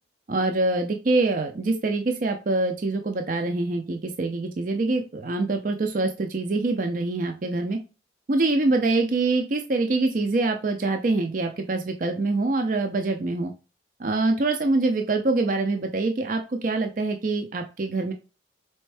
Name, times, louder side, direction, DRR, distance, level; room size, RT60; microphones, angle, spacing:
voice 1, 0.3-7.8 8.3-13.5 14.0-18.1, right 2 dB, 45° right, 5 dB, 0.5 m, -25 dB
4.3 x 3.5 x 3.3 m, 0.31 s
head